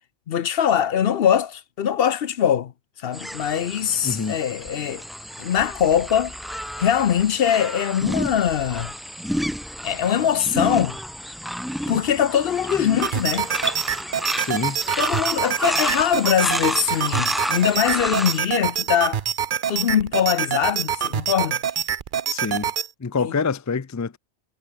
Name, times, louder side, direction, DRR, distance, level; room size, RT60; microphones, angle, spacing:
voice 1, 0.3-2.7 3.0-5.0 5.4-6.3 6.8-8.9 9.8-11.0 11.9-13.5 15.0-19.2 19.7-21.6 23.2-23.4, left 9 dB, 60° left, 0.9 m, -22 dB
sound 1, 3.1-18.4, equal, ahead, 1.2 m, -30 dB
voice 2, 4.0-4.4 14.3-14.8 22.3-22.7 23.0-24.2, left 5 dB, 25° left, 0.4 m, -26 dB
sound 2, 12.0-13.9, right 1 dB, 30° right, 6.4 m, -35 dB
sound 3, 13.0-22.9, right 8 dB, 55° right, 0.8 m, -26 dB
omnidirectional pair, 1.1 m